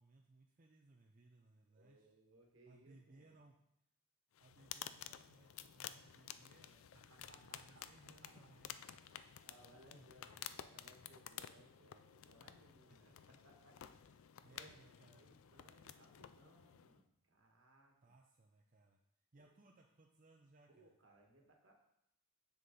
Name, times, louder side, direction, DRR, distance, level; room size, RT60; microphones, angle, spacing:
voice 1, 0.0-2.1 2.7-3.6 4.4-9.1 9.9-10.5 12.9-13.0 14.4-15.3 18.0-19.0 19.3-20.9, right 2 dB, 40° right, 0 dB, 0.5 m, -66 dB
voice 2, 1.7-3.4 7.1-8.3 9.2-14.7 15.1-18.1 19.3-19.5 20.7-21.7, right 1 dB, 65° right, 1 dB, 1.4 m, -67 dB
sound 1, 4.3-17.0, left 10 dB, 75° left, 0.4 m, -53 dB
7.2 x 6.4 x 3.8 m, 0.79 s
head